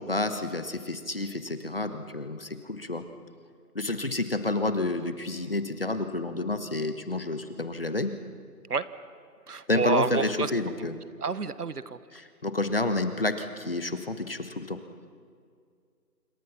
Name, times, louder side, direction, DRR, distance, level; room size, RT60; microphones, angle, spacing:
voice 1, 0.0-3.1 3.7-8.2 9.7-11.0 12.1-14.8, left 2 dB, 35° left, 9 dB, 1.2 m, -29 dB
voice 2, 9.5-10.5 11.2-12.0, right 5 dB, 70° right, 15 dB, 1.3 m, -28 dB
27.0 x 24.0 x 5.8 m, 2.2 s
figure-of-eight pair, 180°, 47 cm